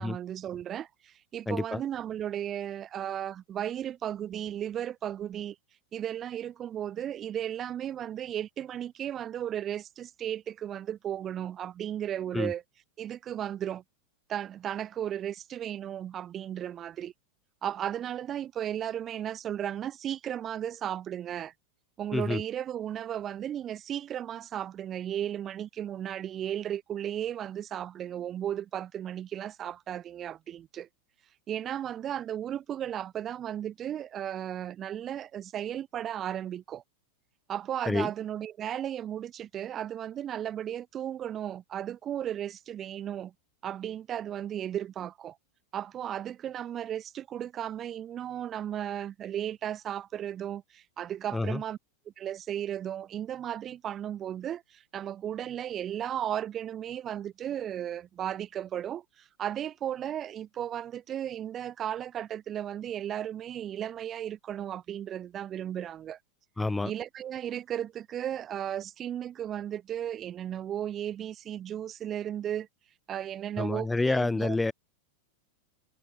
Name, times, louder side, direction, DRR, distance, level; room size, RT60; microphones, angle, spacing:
voice 1, 0.0-5.6 5.9-12.6 13.0-13.8 14.3-17.1 17.6-21.5 22.0-30.9 31.5-36.8 37.5-43.3 43.6-45.4 45.7-51.8 52.2-66.2 66.8-72.7 73.1-74.6, right 10 dB, 30° right, 2.8 m, -35 dB
voice 2, 1.5-1.8 12.3-12.5 22.1-22.4 37.9-38.1 51.3-51.6 66.6-66.9 73.6-74.7, left 2 dB, 10° left, 0.9 m, -28 dB
figure-of-eight pair, 90°, 0 cm